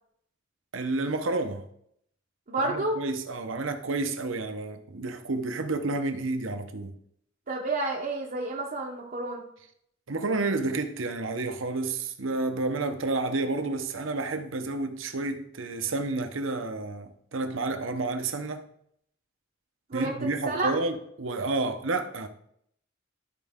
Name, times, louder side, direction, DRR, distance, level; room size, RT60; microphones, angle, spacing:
voice 1, 0.7-1.6 2.6-6.9 10.1-18.6 19.9-22.3, right 3 dB, 70° right, 0.9 m, -30 dB
voice 2, 2.5-3.0 7.5-9.5 19.9-20.1 20.5-20.7, right 2 dB, 45° right, 0.9 m, -30 dB
12.5 x 4.6 x 3.6 m
head